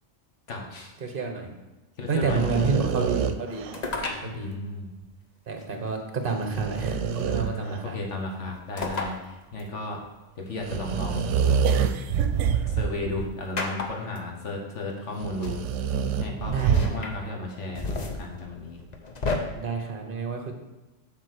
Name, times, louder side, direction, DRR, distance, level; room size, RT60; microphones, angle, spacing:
voice 1, 0.5-0.9 2.0-2.8 4.2-4.9 7.3-10.0 10.4-11.3 12.7-15.6 16.2-18.8, left 2 dB, 80° left, 1 dB, 1.6 m, -34 dB
voice 2, 1.0-1.5 2.1-4.5 5.5-8.0 16.4-17.0 19.6-20.5, right 4 dB, 50° right, 5 dB, 1.2 m, -30 dB
sound 1, 2.3-3.9 6.3-7.8 10.6-13.3 13.9-14.0 15.2-17.1, right 7 dB, 85° right, 0.9 m, -26 dB
sound 2, 3.7-4.3 5.6-5.7 7.2-7.6 8.8-9.2 9.6-9.7 11.1-12.3 13.6-14.2 15.1-15.2 15.4-15.6 16.6-17.1 17.6-19.4, left 3 dB, 40° left, 0.8 m, -32 dB
7.4 x 3.9 x 6.5 m, 1.1 s
omnidirectional pair, 1.2 m